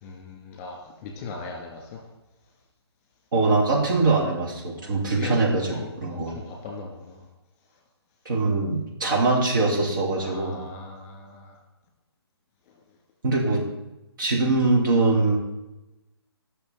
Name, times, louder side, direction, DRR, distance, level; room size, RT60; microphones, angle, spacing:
voice 1, 0.0-2.0 4.7-7.2 10.2-11.6, left 4 dB, 25° left, 1 dB, 2.5 m, -39 dB
voice 2, 3.3-6.4 8.2-10.6 13.2-13.6 14.2-15.4, right 3 dB, 50° right, -2 dB, 3.0 m, -22 dB
19.5 x 6.6 x 4.0 m, 1.0 s
figure-of-eight pair, 140°, 14 cm